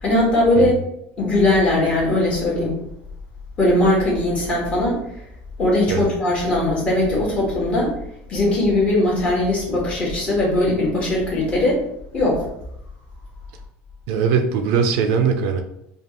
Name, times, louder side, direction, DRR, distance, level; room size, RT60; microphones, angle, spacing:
voice 1, 0.0-0.8 1.2-2.8 3.6-5.0 5.6-7.9 8.3-11.8 12.1-12.5, left 1 dB, 25° left, -4 dB, 1.4 m, -19 dB
voice 2, 14.1-15.6, right 6 dB, 65° right, 6 dB, 0.5 m, -20 dB
5.2 x 2.4 x 3.0 m, 0.76 s
cardioid pair, 170°, 5 cm